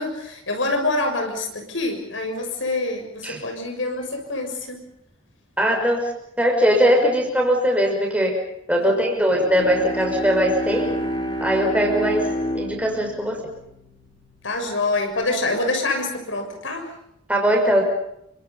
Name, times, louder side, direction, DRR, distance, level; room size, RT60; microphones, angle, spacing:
voice 1, 0.0-4.8 8.8-9.1 14.4-16.9, left 2 dB, 70° left, 4 dB, 6.6 m, -26 dB
voice 2, 5.6-6.1 6.4-8.4 8.7-10.9 11.4-12.3 12.5-13.4 17.3-17.8, equal, 5° right, 1 dB, 6.0 m, -20 dB
Bowed string instrument, 9.3-14.7, equal, 25° left, 5.2 m, -29 dB
29.5 x 25.5 x 5.5 m, 0.77 s
head